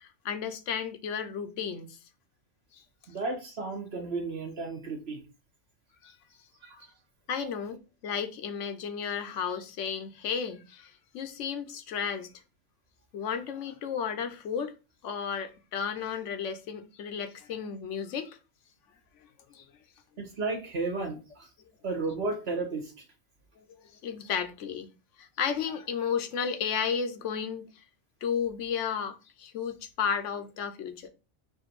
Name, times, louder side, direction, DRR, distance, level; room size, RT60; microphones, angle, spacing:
voice 1, 0.0-2.0 6.0-6.1 7.3-12.3 13.1-14.7 15.0-18.4 19.5-19.6 23.6-24.9 25.2-27.6 28.2-31.1, left 7 dB, 80° left, 1.0 m, -33 dB
voice 2, 3.1-5.2 6.6-6.9 20.2-21.5 21.8-22.9, right 3 dB, 60° right, 1.5 m, -33 dB
4.4 x 2.6 x 4.5 m
omnidirectional pair, 1.2 m